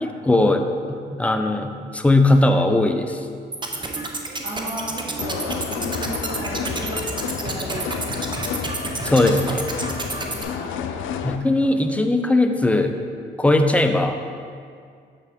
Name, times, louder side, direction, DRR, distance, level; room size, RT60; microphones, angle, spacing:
voice 1, 0.0-3.3 9.0-9.7 11.2-12.9 13.4-14.2, left 2 dB, 5° left, 6 dB, 0.5 m, -19 dB
sound 1, 3.5-10.4, right 3 dB, 25° right, 0.8 m, -30 dB
voice 2, 4.4-5.5 5.7-7.0 7.4-8.2 10.4-11.3, right 1 dB, 45° right, -8 dB, 1.7 m, -34 dB
sound 2, 5.2-11.4, left 8 dB, 80° left, 0.4 m, -30 dB
6.9 x 6.8 x 3.6 m, 2.2 s
cardioid pair, 90°, 20 cm